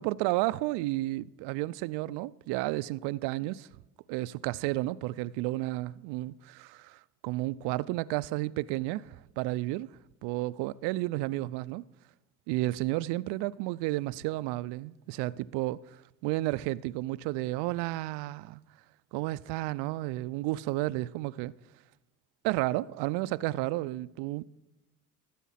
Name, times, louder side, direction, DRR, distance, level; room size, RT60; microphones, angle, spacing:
voice 1, 0.0-3.7 4.1-9.9 10.2-11.8 12.5-15.8 16.2-18.6 19.1-21.5 22.4-24.4, right 18 dB, 65° right, 0.5 m, -32 dB
12.5 x 8.4 x 5.7 m
hypercardioid pair, 75°, 44 cm